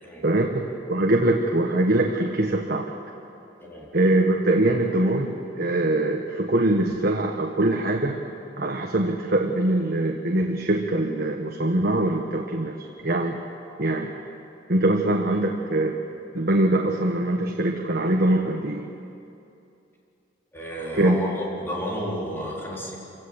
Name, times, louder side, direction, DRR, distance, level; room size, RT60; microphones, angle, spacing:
voice 1, 0.2-2.9 3.9-8.2 8.6-12.7 13.0-13.4 13.8-14.1 14.7-16.0 16.3-18.9 20.9-21.2, right 1 dB, 55° right, 1 dB, 1.4 m, -23 dB
voice 2, 20.5-23.0, equal, 10° left, -4 dB, 4.3 m, -32 dB
27.0 x 16.5 x 8.2 m, 2.7 s
head